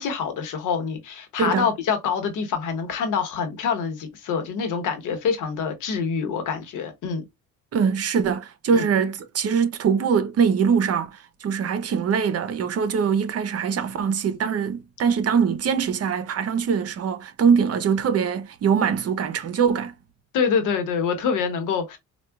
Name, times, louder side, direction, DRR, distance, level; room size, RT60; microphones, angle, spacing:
voice 1, 0.0-7.2 8.7-8.8 20.3-22.0, left 6 dB, 85° left, 1.0 m, -26 dB
voice 2, 1.4-1.7 7.7-20.0, right 6 dB, 55° right, 0.7 m, -22 dB
4.4 x 2.3 x 2.2 m
cardioid pair, 90°, 30 cm